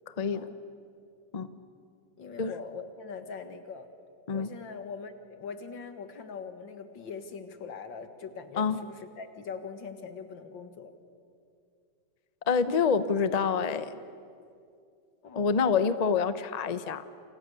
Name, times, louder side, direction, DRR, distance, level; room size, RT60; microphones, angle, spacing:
voice 1, 0.1-0.4 1.3-1.5 2.4-2.5 4.3-4.5 8.6-8.8 12.5-14.0 15.3-17.0, left 5 dB, 40° left, 12 dB, 0.5 m, -27 dB
voice 2, 2.2-3.9 4.3-11.0 15.2-15.6, left 5 dB, 85° left, 8 dB, 2.4 m, -42 dB
28.5 x 28.0 x 6.8 m, 2.5 s
omnidirectional pair, 2.0 m